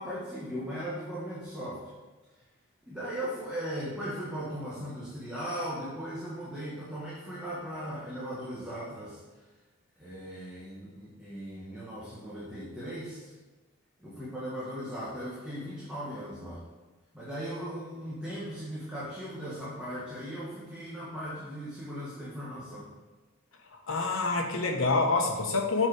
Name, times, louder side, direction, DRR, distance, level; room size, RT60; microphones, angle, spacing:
voice 1, 0.0-1.9 2.9-9.2 10.0-13.3 14.0-16.6 17.1-22.9, equal, 5° right, -9 dB, 1.5 m, -38 dB
voice 2, 23.9-25.9, left 3 dB, 75° left, 2 dB, 1.1 m, -27 dB
7.4 x 4.8 x 4.9 m, 1.2 s
head